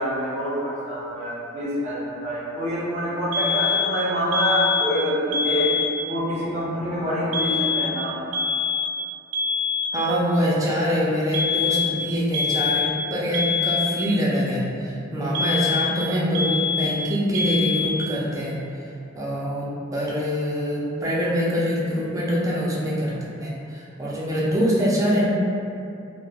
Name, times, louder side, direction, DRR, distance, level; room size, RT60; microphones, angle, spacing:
voice 1, 0.0-5.7 6.1-8.2, equal, 35° right, -9 dB, 0.8 m, -26 dB
sound 1, 3.3-4.0 4.3-5.0 5.3-6.0 7.3-8.0 8.3-9.0 9.3-10.0 11.3-12.0 12.3-13.0 13.3-14.0 15.3-16.0 16.3-17.0 17.3-18.0, left 5 dB, 90° right, 0.3 m, -24 dB
voice 2, 9.9-18.6 19.1-23.1 23.4-25.3, equal, 15° right, -6 dB, 0.4 m, -24 dB
3.1 x 2.1 x 2.3 m, 2.6 s
head